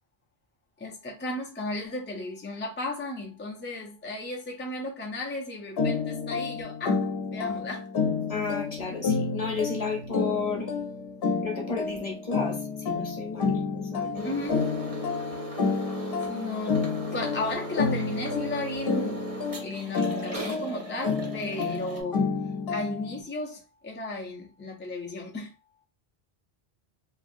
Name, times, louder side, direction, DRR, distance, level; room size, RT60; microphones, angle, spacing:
voice 1, 0.8-7.0 7.3-7.8 14.2-14.7 16.3-16.8 17.1-19.2 19.6-22.2 22.7-25.5, left 2 dB, 20° left, 0.3 m, -34 dB
sound 1, 5.8-23.2, left 4 dB, 75° left, 0.8 m, -30 dB
voice 2, 8.3-10.7 11.4-14.3, left 4 dB, 40° left, 0.9 m, -33 dB
sound 2, 14.1-22.0, right 3 dB, 40° right, 0.8 m, -38 dB
2.9 x 2.5 x 2.5 m
omnidirectional pair, 1.0 m